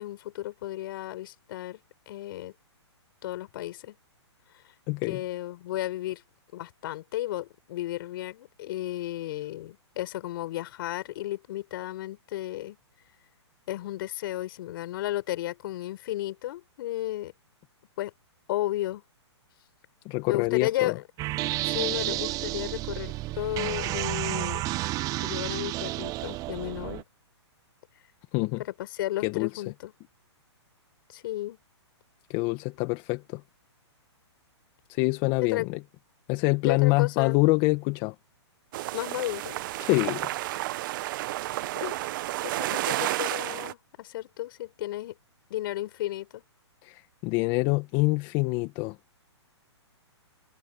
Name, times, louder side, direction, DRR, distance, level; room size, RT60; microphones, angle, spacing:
voice 1, 0.0-1.8 2.1-2.5 3.2-4.0 5.1-6.2 6.5-12.8 13.7-17.3 18.0-18.1 18.5-19.0 20.3-21.0 21.6-24.6 25.2-27.0 28.6-29.9 31.1-31.6 35.4-35.7 36.6-37.4 38.9-39.6 41.8-42.0 42.4-45.1 45.5-46.4, left 15 dB, 50° left, 5.4 m, -33 dB
voice 2, 4.9-5.2 20.0-20.9 28.3-28.6 29.2-29.5 32.3-33.4 34.9-35.8 36.3-38.1 39.8-40.3 46.8-48.9, left 25 dB, 30° left, 1.6 m, -25 dB
sound 1, 21.2-27.0, right 18 dB, 25° right, 0.7 m, -31 dB
sound 2, 38.7-43.7, right 16 dB, 45° right, 1.3 m, -31 dB
hypercardioid pair, 135°, 15 cm